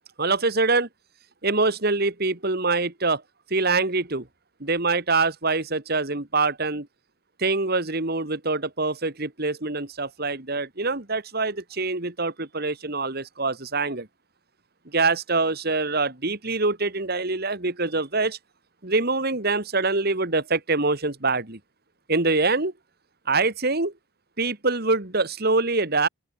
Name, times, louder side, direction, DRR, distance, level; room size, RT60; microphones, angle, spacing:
voice 1, 0.2-0.9 1.4-3.2 3.5-4.3 4.6-6.9 7.4-14.1 14.9-18.4 18.8-21.6 22.1-22.7 23.3-23.9 24.4-26.1, right 3 dB, 50° right, 2.2 m, -24 dB
open air
head